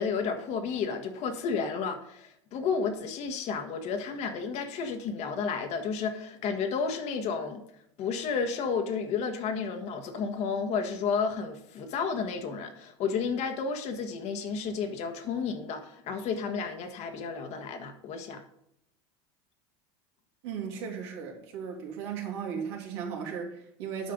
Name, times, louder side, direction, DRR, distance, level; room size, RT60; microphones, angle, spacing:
voice 1, 0.0-7.6 8.0-18.4, left 5 dB, 50° left, 1.6 m, -32 dB
voice 2, 20.4-24.1, right 7 dB, 75° right, 2.7 m, -36 dB
9.6 x 5.5 x 5.2 m
supercardioid pair, 100°, 14 cm